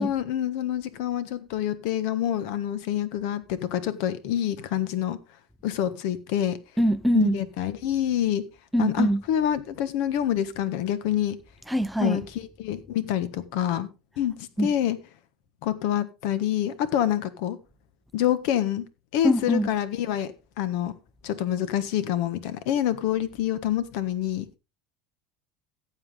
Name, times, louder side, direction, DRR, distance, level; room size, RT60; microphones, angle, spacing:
voice 1, 0.0-5.2 5.6-6.6 7.1-8.4 8.8-11.4 12.0-13.9 14.2-15.0 15.6-17.6 18.1-18.8 19.1-20.3 20.6-20.9 21.2-24.5, left 11 dB, 70° left, 1.4 m, -27 dB
voice 2, 6.8-7.4 8.7-9.2 11.7-12.2 14.6-14.7 19.2-19.7, equal, ahead, 0.6 m, -23 dB
14.5 x 8.1 x 3.7 m
cardioid pair, 145°, 0 cm